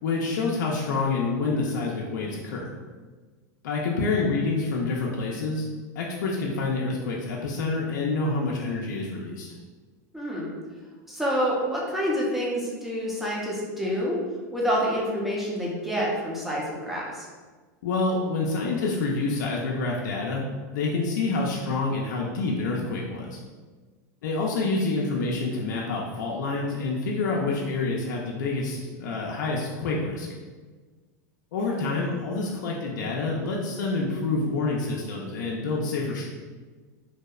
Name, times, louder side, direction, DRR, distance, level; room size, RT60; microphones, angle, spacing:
voice 1, 0.0-2.7 3.6-5.7 6.0-9.5 17.8-20.5 20.7-23.4 24.2-30.3 31.5-36.3, left 3 dB, 80° left, -2 dB, 0.4 m, -27 dB
voice 2, 10.1-10.5 11.1-14.2 14.5-17.3, equal, ahead, -5 dB, 0.5 m, -27 dB
2.6 x 2.0 x 2.3 m, 1.4 s
supercardioid pair, 140°, 10 cm